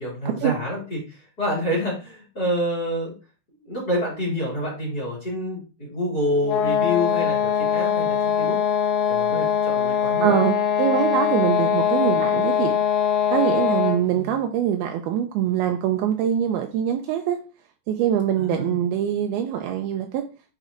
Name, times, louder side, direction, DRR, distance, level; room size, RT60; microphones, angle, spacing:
voice 1, 0.0-3.1 3.6-8.6 9.1-10.4 14.1-14.3 18.4-18.7, left 1 dB, 30° left, 2.3 m, -27 dB
sound 1, 6.4-14.1, left 8 dB, 90° left, 1.6 m, -22 dB
voice 2, 10.2-12.8 13.3-17.4 17.9-20.3, right 10 dB, 80° right, 2.3 m, -23 dB
9.1 x 4.2 x 2.5 m
omnidirectional pair, 4.7 m